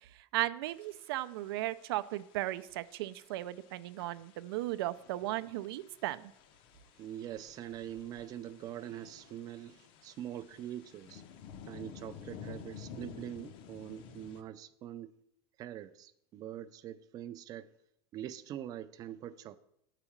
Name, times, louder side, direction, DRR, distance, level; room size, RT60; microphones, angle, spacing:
voice 1, 0.3-6.3, right 16 dB, 85° right, 0.4 m, -36 dB
sound 1, 0.7-14.4, left 7 dB, 45° left, 0.7 m, -53 dB
voice 2, 7.0-11.2 11.7-15.2 15.6-17.7 18.1-19.6, right 11 dB, 30° right, 0.4 m, -44 dB
9.0 x 4.9 x 7.1 m
supercardioid pair, 165°, 12 cm